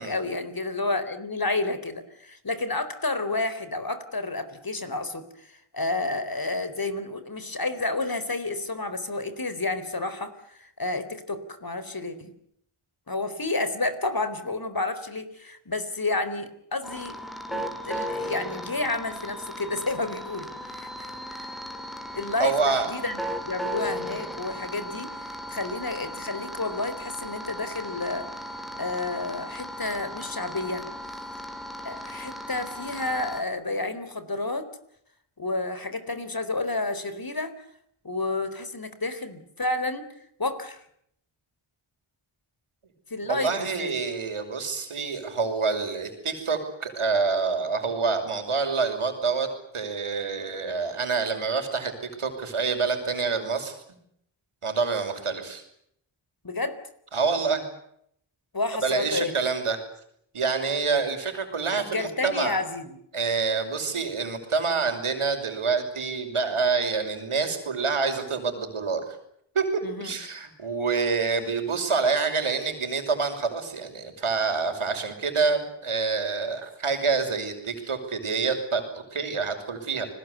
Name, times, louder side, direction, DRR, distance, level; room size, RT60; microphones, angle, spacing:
voice 1, 0.0-12.3 13.1-17.1 17.5-21.5 22.1-28.4 28.8-30.9 31.8-34.6 35.4-37.5 38.0-40.0 40.4-40.8 43.1-43.9 56.4-56.8 58.5-59.3 61.7-63.0 69.8-70.2, left 2 dB, 45° left, 11 dB, 4.3 m, -30 dB
sound 1, 16.8-33.4, equal, ahead, 4.2 m, -36 dB
voice 2, 22.4-22.9 43.3-49.5 49.7-53.8 54.6-55.6 57.1-57.6 58.8-59.8 60.3-62.6 63.1-69.0 69.5-69.6 70.0-80.1, right 4 dB, 85° right, 6 dB, 6.0 m, -27 dB
29.5 x 20.5 x 8.2 m, 0.71 s
wide cardioid pair, 55°, 49 cm